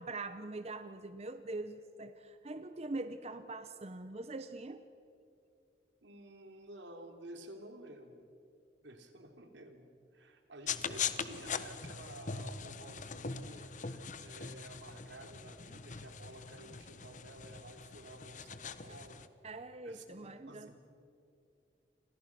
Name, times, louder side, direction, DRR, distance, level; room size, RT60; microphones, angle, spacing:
voice 1, 0.0-4.8 19.4-20.7, right 2 dB, 35° right, 10 dB, 0.8 m, -43 dB
voice 2, 6.0-8.3 8.8-19.3 19.8-20.9, right 1 dB, 80° right, 5 dB, 3.2 m, -52 dB
sound 1, 10.7-19.3, left 6 dB, 45° left, 1.1 m, -42 dB
29.5 x 26.5 x 6.1 m, 2.6 s
head